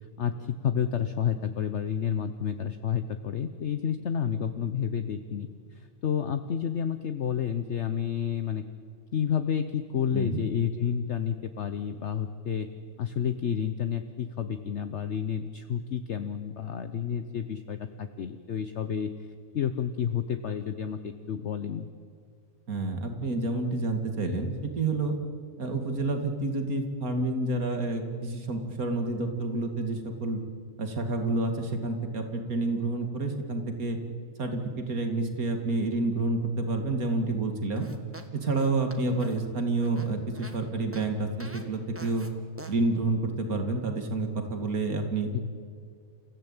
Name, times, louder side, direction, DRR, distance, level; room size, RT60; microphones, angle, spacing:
voice 1, 0.2-8.6 9.1-12.7 13.0-19.1 19.5-21.9 45.3-45.4, left 8 dB, 55° left, 9 dB, 1.1 m, -30 dB
voice 2, 22.7-25.2 25.6-30.4 30.8-34.0 34.4-37.9 38.3-42.3 42.7-45.3, right 2 dB, 80° right, 5 dB, 2.6 m, -29 dB
sound 1, 37.8-40.6 40.9-41.1 41.4-41.6 42.0-42.3 42.6-42.7, right 1 dB, 10° right, 1.6 m, -46 dB
29.0 x 15.5 x 8.9 m, 2.2 s
omnidirectional pair, 1.5 m